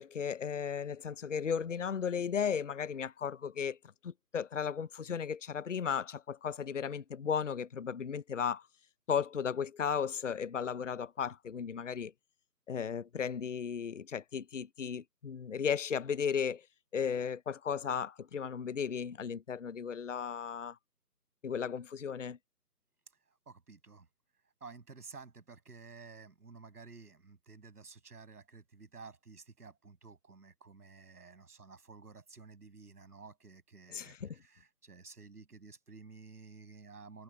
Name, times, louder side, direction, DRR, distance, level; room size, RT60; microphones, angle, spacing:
voice 1, 0.0-3.8 4.0-8.6 9.1-12.1 12.7-16.7 16.9-20.8 21.4-22.4 33.9-34.4, left 7 dB, 50° left, 0.7 m, -35 dB
voice 2, 23.3-24.1 24.6-37.2, right 4 dB, 65° right, 7.4 m, -53 dB
figure-of-eight pair, 160°, 49 cm